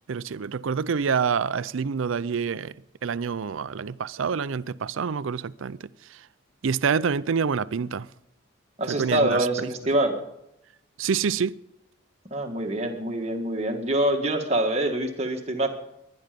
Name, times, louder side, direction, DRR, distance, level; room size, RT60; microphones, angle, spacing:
voice 1, 0.1-2.8 3.0-6.2 6.6-8.1 8.9-9.7 11.0-11.6, right 6 dB, 80° right, 0.5 m, -27 dB
voice 2, 8.8-10.2 12.3-15.7, right 1 dB, 30° right, 1.9 m, -25 dB
22.0 x 10.5 x 5.2 m
head